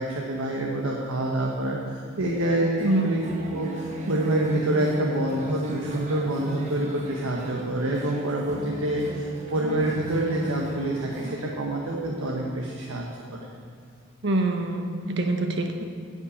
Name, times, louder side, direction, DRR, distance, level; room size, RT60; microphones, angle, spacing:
voice 1, 0.0-3.2 3.5-13.0, right 1 dB, 85° right, -2 dB, 1.1 m, -27 dB
sound 1, 2.8-11.4, right 1 dB, 35° right, 1.2 m, -38 dB
voice 2, 2.8-3.1 14.2-15.9, right 2 dB, 55° right, 4 dB, 1.0 m, -25 dB
10.0 x 5.5 x 8.4 m, 2.2 s
head